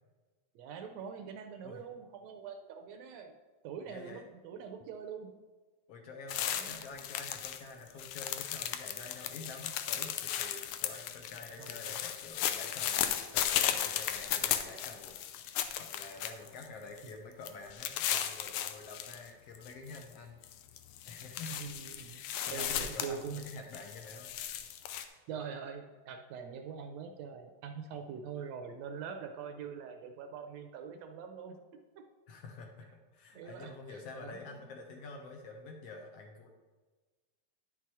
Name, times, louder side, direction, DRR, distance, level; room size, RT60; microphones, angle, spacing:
voice 1, 0.6-3.3 3.6-5.3 6.5-6.8 11.6-12.0 21.5-22.2 22.5-23.4 25.3-31.6 33.4-34.6, right 6 dB, 75° right, 6 dB, 1.7 m, -44 dB
voice 2, 3.8-4.2 5.9-20.4 21.0-21.6 22.1-24.3 32.3-36.5, left 3 dB, 70° left, 3 dB, 1.7 m, -48 dB
sound 1, 6.3-7.6 7.9-16.6 17.0-17.1 17.4-19.2 19.5-20.0 20.4-25.0, left 10 dB, 90° left, 1.3 m, -36 dB
9.9 x 6.1 x 4.6 m, 1.3 s
omnidirectional pair, 3.3 m